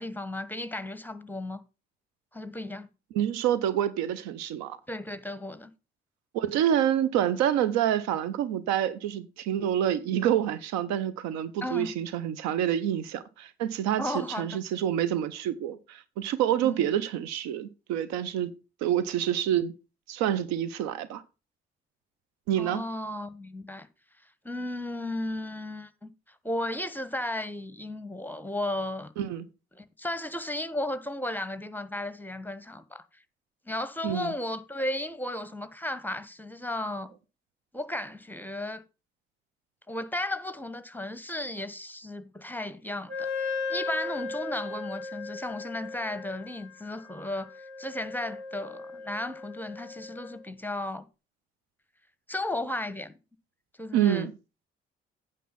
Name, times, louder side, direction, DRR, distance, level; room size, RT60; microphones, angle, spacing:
voice 1, 0.0-1.6 2.3-2.9 4.9-5.7 11.6-11.9 14.0-14.6 16.6-16.9 22.6-23.9 24.4-26.1 26.4-29.1 29.7-33.0 33.7-37.1 37.7-38.8 39.9-51.0 52.3-53.1 53.8-54.3, left 1 dB, 5° left, 1.1 m, -34 dB
voice 2, 3.1-4.8 6.3-19.7 20.1-21.2 22.5-22.8 29.2-29.5 34.0-34.3 53.9-54.3, right 10 dB, 65° right, 0.7 m, -27 dB
Wind instrument woodwind instrument, 43.1-50.4, left 4 dB, 85° right, 3.3 m, -37 dB
9.2 x 5.7 x 5.6 m
figure-of-eight pair, 40°, 29 cm